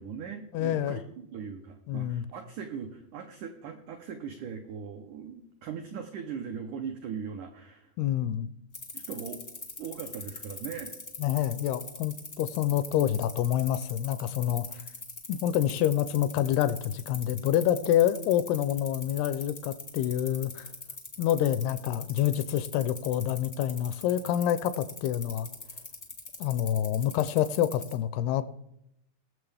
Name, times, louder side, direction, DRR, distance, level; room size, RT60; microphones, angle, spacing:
voice 1, 0.0-7.9 8.9-9.4 9.8-11.0, right 7 dB, 85° right, 5 dB, 1.7 m, -39 dB
voice 2, 0.5-1.0 1.9-2.2 8.0-8.5 11.2-14.8 15.3-20.7 21.2-25.5 26.4-28.4, left 11 dB, 85° left, 14 dB, 2.5 m, -27 dB
sound 1, 8.7-27.9, left 3 dB, 55° left, 0.6 m, -41 dB
20.5 x 7.2 x 3.4 m, 0.80 s
omnidirectional pair, 4.7 m